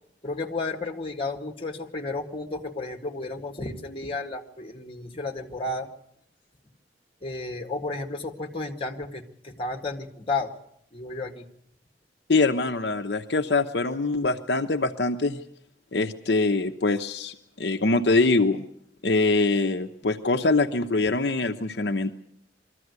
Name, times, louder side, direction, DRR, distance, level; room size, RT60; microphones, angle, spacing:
voice 1, 0.2-5.9 7.2-10.5 10.9-11.5, left 3 dB, 30° left, 3 dB, 1.9 m, -32 dB
voice 2, 12.3-15.4 15.9-18.7 19.0-22.1, left 3 dB, 65° left, 5 dB, 0.8 m, -24 dB
23.0 x 14.0 x 9.5 m, 0.73 s
head